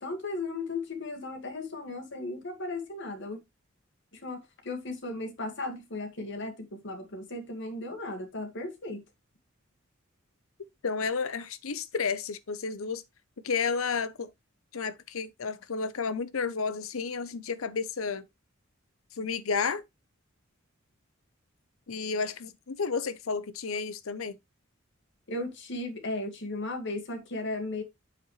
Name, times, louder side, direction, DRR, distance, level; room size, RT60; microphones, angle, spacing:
voice 1, 0.0-3.4 4.1-9.0 25.3-27.8, left 2 dB, 60° left, 1.8 m, -36 dB
voice 2, 10.8-13.0 13.4-14.3 14.7-18.2 19.2-19.8 21.9-24.4, left 5 dB, 90° left, 0.7 m, -31 dB
8.3 x 7.2 x 3.2 m
head